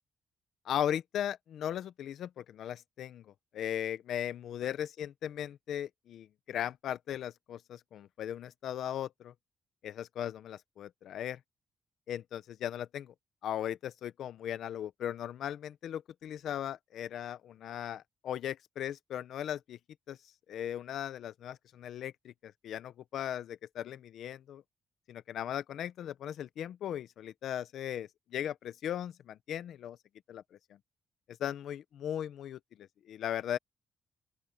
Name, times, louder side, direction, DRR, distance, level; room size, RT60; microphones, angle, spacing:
voice 1, 0.7-3.2 3.5-9.3 9.8-11.4 12.1-13.1 13.4-19.8 20.1-20.2 20.5-24.6 25.1-30.0 30.3-30.4 31.4-33.6, left 10 dB, 75° left, 0.7 m, -38 dB
open air
wide cardioid pair, 165°, 0 cm